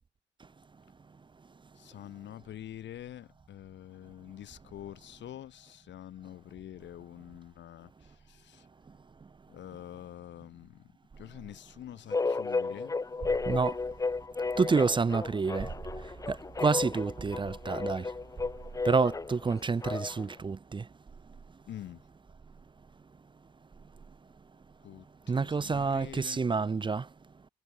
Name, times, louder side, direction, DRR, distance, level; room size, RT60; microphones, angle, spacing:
voice 1, 1.8-8.6 9.5-10.9 11.2-12.9 21.7-22.0 24.8-26.4, left 11 dB, 65° left, 1.0 m, -46 dB
sound 1, 12.1-20.3, left 3 dB, 15° left, 0.6 m, -34 dB
voice 2, 13.4-13.8 14.6-18.1 18.8-20.9 25.3-27.1, right 4 dB, 25° right, 0.6 m, -29 dB
cardioid pair, 90°, 20 cm